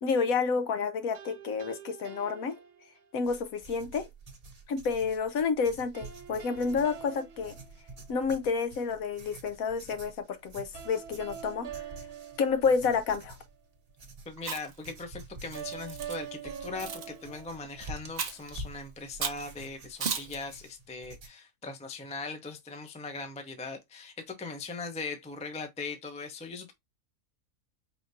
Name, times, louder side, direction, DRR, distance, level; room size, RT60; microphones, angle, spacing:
voice 1, 0.0-2.6 3.1-4.0 4.7-7.5 8.1-11.9 12.4-13.3, left 5 dB, 70° left, 1.2 m, -29 dB
sound 1, 1.1-3.3 5.9-8.4 10.7-13.3 15.5-18.4, right 9 dB, 85° right, 1.3 m, -45 dB
sound 2, 3.2-21.3, right 2 dB, 30° right, 0.8 m, -49 dB
voice 2, 14.3-26.7, left 4 dB, 10° left, 0.3 m, -40 dB
Chewing mastication, 14.4-14.8 15.5-16.2 16.8-17.1 18.2-18.5 19.2-19.4 20.0-20.4, right 6 dB, 55° right, 0.4 m, -34 dB
5.0 x 3.2 x 2.6 m
omnidirectional pair, 1.6 m